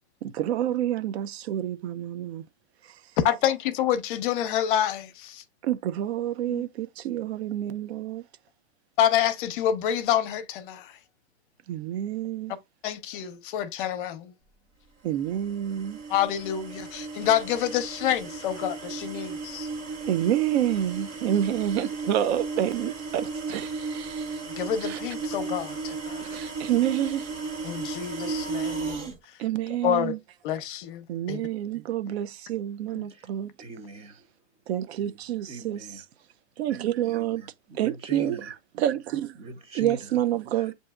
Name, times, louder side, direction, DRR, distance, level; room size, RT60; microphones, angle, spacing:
voice 1, 0.2-2.4 2.8-2.9 5.6-8.2 11.7-12.5 15.0-16.0 20.1-24.4 24.8-25.0 26.3-27.3 29.4-30.2 31.1-33.5 34.7-36.0 36.6-37.4 37.7-38.5 38.8-39.4 39.7-40.7, right 11 dB, 65° right, 0.6 m, -28 dB
voice 2, 3.2-5.4 6.5-6.6 9.0-11.0 12.8-14.3 16.1-19.7 24.6-26.4 27.6-29.1 29.8-30.2 30.4-31.4 33.0-33.1, left 10 dB, 50° left, 0.7 m, -27 dB
sound 1, 15.2-29.2, right 4 dB, 40° right, 1.5 m, -35 dB
voice 3, 33.6-34.3 35.5-36.0 37.1-38.5 39.4-40.2 40.5-40.7, right 2 dB, 15° right, 0.6 m, -41 dB
7.6 x 2.7 x 2.3 m
supercardioid pair, 150°, 34 cm